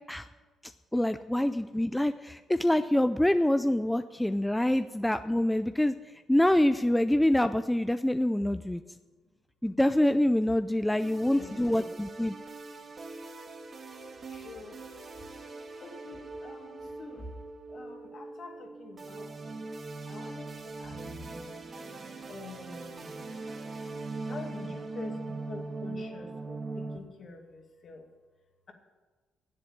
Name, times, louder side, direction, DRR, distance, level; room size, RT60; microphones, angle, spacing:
voice 1, 0.9-5.9 6.3-8.8 9.6-12.3, left 1 dB, 5° left, 10 dB, 0.4 m, -26 dB
sound 1, 11.0-27.0, right 3 dB, 45° right, 1.5 m, -41 dB
voice 2, 11.3-11.9 14.3-14.8 15.8-17.3 17.7-19.6 20.1-20.5 20.8-21.0 21.3-21.5 22.3-23.1 24.3-25.2 25.5-28.0, left 4 dB, 50° left, 3 dB, 2.3 m, -46 dB
10.5 x 8.0 x 8.7 m, 1.4 s
cardioid pair, 90°, 0 cm